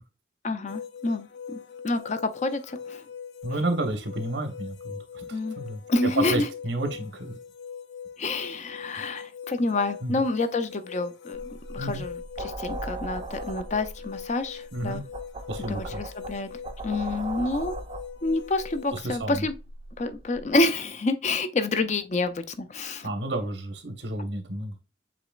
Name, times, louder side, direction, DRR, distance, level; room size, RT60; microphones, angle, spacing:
voice 1, 0.4-1.6 1.8-3.0 5.3-5.6 5.9-6.5 8.2-15.0 15.7-16.5 16.8-17.8 18.2-19.5 20.0-23.1, left 2 dB, 40° left, 0.5 m, -28 dB
sound 1, 0.7-19.0, left 7 dB, 80° left, 0.6 m, -42 dB
voice 2, 3.4-7.3 10.0-10.2 11.8-12.0 14.7-15.0 15.5-16.0 18.9-19.4 23.0-24.7, right 2 dB, 85° right, 1.1 m, -31 dB
sound 2, 11.3-20.5, right 2 dB, 35° right, 0.5 m, -39 dB
7.5 x 3.0 x 2.4 m
head